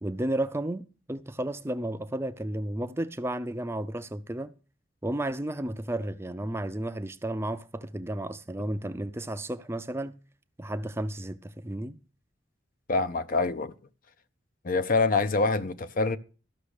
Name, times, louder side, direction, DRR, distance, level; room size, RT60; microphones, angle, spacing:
voice 1, 0.0-4.5 5.0-10.2 10.6-12.0, right 1 dB, 15° right, 0.4 m, -33 dB
voice 2, 12.9-13.7 14.6-16.2, left 3 dB, 45° left, 0.6 m, -25 dB
13.5 x 6.0 x 6.5 m
head